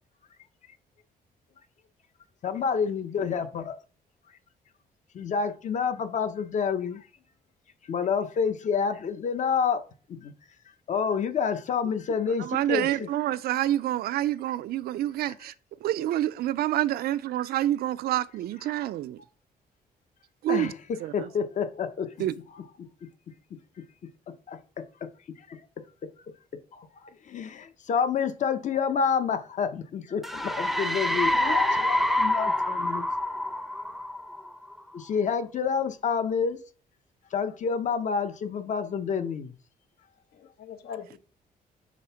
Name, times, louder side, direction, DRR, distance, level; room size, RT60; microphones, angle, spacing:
voice 1, 2.4-3.7 5.1-7.0 7.9-9.8 10.2-10.3 10.9-13.1 20.5-22.1 22.5-22.6 24.5-24.6 26.8-26.9 27.3-31.3 31.9-33.1 34.9-36.6 37.3-39.5, left 6 dB, 50° left, 0.8 m, -28 dB
voice 2, 12.4-15.5 15.8-19.2 20.4-20.7 21.0-21.3 22.2-22.3, right 13 dB, 75° right, 0.4 m, -27 dB
sound 1, 30.2-34.8, left 1 dB, ahead, 0.4 m, -27 dB
voice 3, 31.3-32.5 40.3-41.2, left 8 dB, 75° left, 1.1 m, -37 dB
6.3 x 3.5 x 5.6 m
cardioid pair, 135°, 16 cm